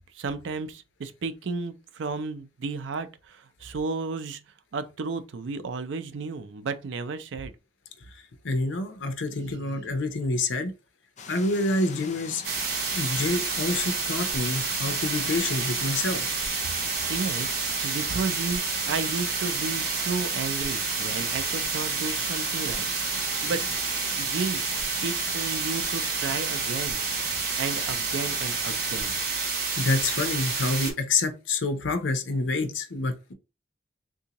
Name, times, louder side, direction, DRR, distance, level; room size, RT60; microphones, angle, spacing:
voice 1, 0.1-4.4 4.7-7.5 9.3-9.9 16.8-17.6 17.8-23.8 24.2-24.6 25.0-27.3 27.6-29.1, right 4 dB, 80° right, 0.4 m, -33 dB
voice 2, 8.4-10.7 11.3-12.4 12.9-16.2 29.8-33.3, left 2 dB, 85° left, 0.7 m, -27 dB
sound 1, 11.2-29.2, left 5 dB, 40° left, 0.4 m, -43 dB
sound 2, 12.4-30.9, right 4 dB, 55° right, 1.0 m, -29 dB
3.7 x 2.7 x 2.9 m
head